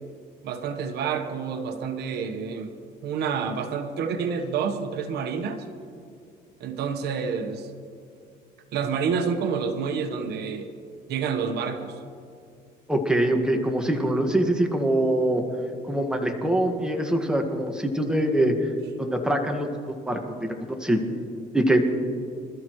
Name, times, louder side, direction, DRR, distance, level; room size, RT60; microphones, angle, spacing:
voice 1, 0.4-2.7 3.0-5.6 6.6-7.7 8.7-10.7 11.1-12.0, right 6 dB, 75° right, 6 dB, 1.2 m, -28 dB
voice 2, 12.9-15.4 15.8-18.5 19.0-19.7 20.1-20.2 20.8-21.0 21.5-21.9, right 1 dB, 5° right, 2 dB, 1.7 m, -23 dB
25.5 x 13.5 x 3.1 m, 2.4 s
cardioid pair, 110°, 17 cm